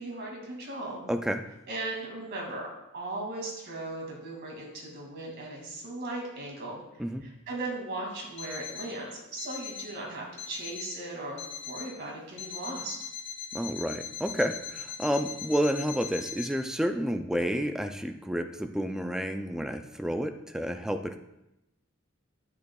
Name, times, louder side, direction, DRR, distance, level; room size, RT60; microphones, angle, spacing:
voice 1, 0.0-1.1 1.7-6.8 7.2-13.0, right 2 dB, 55° right, -2 dB, 2.3 m, -37 dB
voice 2, 1.1-1.4 7.0-7.3 13.5-21.2, equal, 5° right, 7 dB, 0.4 m, -30 dB
Alarm, 8.4-9.0 9.4-10.0 10.4-11.0 11.4-12.0 12.4-16.5, left 7 dB, 35° left, 1.5 m, -40 dB
9.6 x 8.2 x 2.3 m, 0.90 s
head